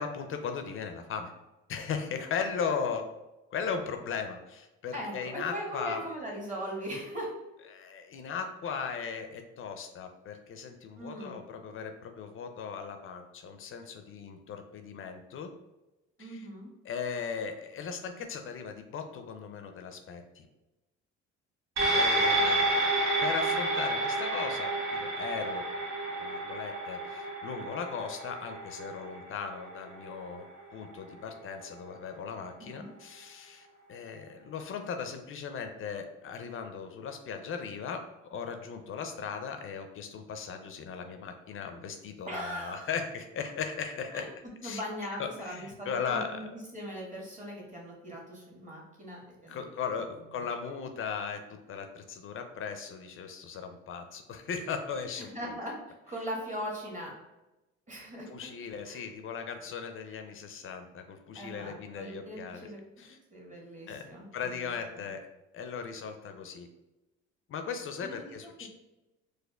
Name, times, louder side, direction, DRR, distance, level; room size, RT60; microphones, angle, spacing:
voice 1, 0.0-1.3 1.7-3.1 3.5-6.0 7.7-15.5 16.2-16.5 16.8-20.5 21.9-22.9 23.2-25.7 26.2-30.5 30.7-44.3 44.6-44.8 45.2-46.5 49.5-51.4 51.7-55.3 58.3-62.7 63.0-63.2 63.9-64.0 64.3-65.2 65.5-66.7 67.5-68.7, left 6 dB, 45° left, 6 dB, 0.4 m, -37 dB
voice 2, 4.9-7.3 11.0-11.4 16.2-16.7 21.8-22.5 32.6-32.9 42.2-42.9 44.1-44.3 44.6-46.4 46.7-49.7 55.2-55.8 56.1-57.1 57.9-58.3 58.8-59.0 61.3-62.8 63.3-65.1 68.0-68.7, equal, 25° right, -2 dB, 1.3 m, -40 dB
sound 1, 21.8-30.4 30.8-30.9, right 2 dB, 60° right, 1.4 m, -30 dB
4.1 x 2.5 x 2.3 m, 1.0 s
supercardioid pair, 85°, 31 cm